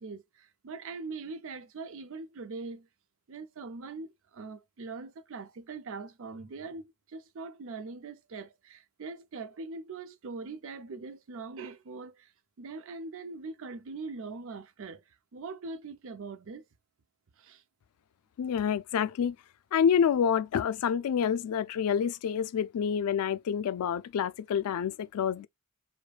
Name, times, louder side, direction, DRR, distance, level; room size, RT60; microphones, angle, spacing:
voice 1, 0.0-2.9 3.3-12.3 12.6-15.0 15.3-16.6 17.4-17.6, right 4 dB, 60° right, 0.5 m, -42 dB
voice 2, 18.4-19.4 19.7-25.5, left 7 dB, 75° left, 0.3 m, -28 dB
4.9 x 2.2 x 2.3 m
head